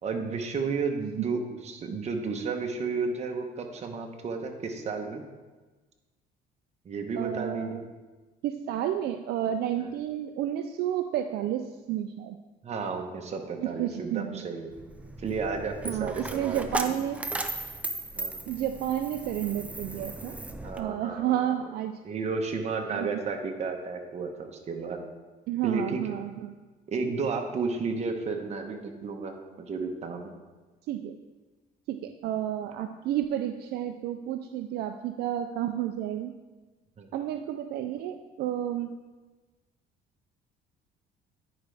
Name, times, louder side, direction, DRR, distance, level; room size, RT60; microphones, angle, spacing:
voice 1, 0.0-5.2 6.8-7.8 12.6-14.7 15.2-16.9 18.1-18.3 20.6-21.5 22.0-25.0 25.6-26.0 26.9-30.3 37.0-37.1, right 4 dB, 40° right, 3 dB, 1.0 m, -32 dB
voice 2, 7.2-7.9 8.4-12.4 13.6-14.5 15.8-17.3 18.5-20.4 20.8-22.0 22.9-23.1 25.5-26.6 30.9-31.2 31.9-36.3 37.1-38.9, right 11 dB, 70° right, 7 dB, 0.4 m, -31 dB
Coin (dropping), 14.7-20.8, right 2 dB, 10° right, 0.5 m, -36 dB
10.0 x 5.0 x 3.4 m, 1.3 s
cardioid pair, 110°, 17 cm